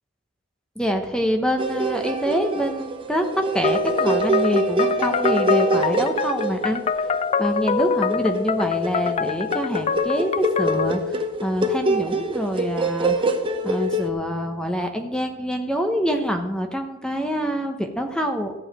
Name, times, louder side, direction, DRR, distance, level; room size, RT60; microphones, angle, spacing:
voice 1, 0.8-6.8 7.4-13.3 13.6-18.6, equal, 5° left, 5 dB, 0.9 m, -26 dB
sound 1, 1.6-14.1, right 1 dB, 25° right, 0.9 m, -25 dB
sound 2, 3.6-11.0, left 5 dB, 30° left, 0.4 m, -25 dB
14.0 x 4.8 x 8.8 m, 1.0 s
head